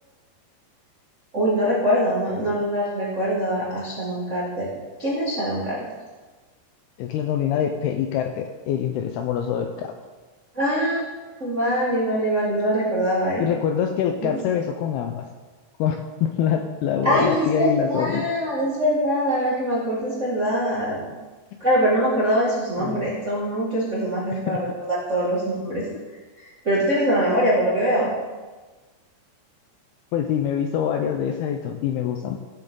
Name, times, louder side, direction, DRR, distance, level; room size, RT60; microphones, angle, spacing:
voice 1, 1.3-4.7 5.0-5.8 10.5-11.0 11.4-13.4 14.2-14.4 17.0-21.1 21.6-25.8 26.4-28.1, equal, 45° right, -7 dB, 0.9 m, -23 dB
voice 2, 7.0-9.9 13.4-15.3 15.8-18.2 22.8-23.1 24.5-24.6 30.1-32.4, left 9 dB, 85° left, 5 dB, 2.3 m, -25 dB
16.0 x 7.7 x 3.8 m, 1.3 s
omnidirectional pair, 5.2 m